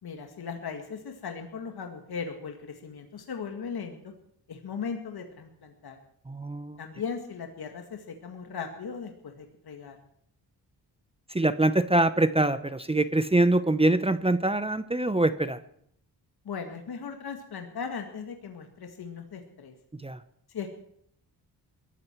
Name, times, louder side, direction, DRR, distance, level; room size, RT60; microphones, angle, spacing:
voice 1, 0.0-4.1 4.5-6.0 6.8-10.0 16.4-19.7 20.5-20.7, left 6 dB, 65° left, 4 dB, 2.0 m, -38 dB
voice 2, 6.3-6.8 11.3-15.6 20.0-20.2, right 2 dB, 15° right, 12 dB, 0.8 m, -24 dB
21.5 x 13.5 x 4.6 m, 0.69 s
cardioid pair, 80°, 40 cm